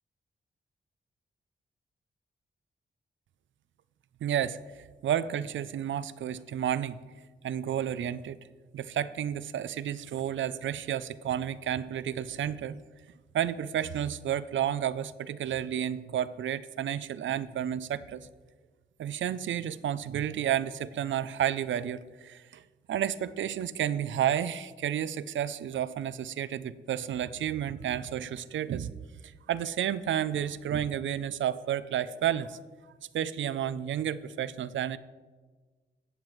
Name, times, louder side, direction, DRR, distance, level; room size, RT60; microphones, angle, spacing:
voice 1, 4.2-4.6 5.0-7.0 7.4-8.4 8.7-12.8 13.3-18.3 19.0-22.6 22.9-29.0 29.2-32.6 33.1-35.0, right 10 dB, 80° right, 17 dB, 0.4 m, -31 dB
14.5 x 8.9 x 3.1 m, 1.4 s
wide cardioid pair, 105°, 19 cm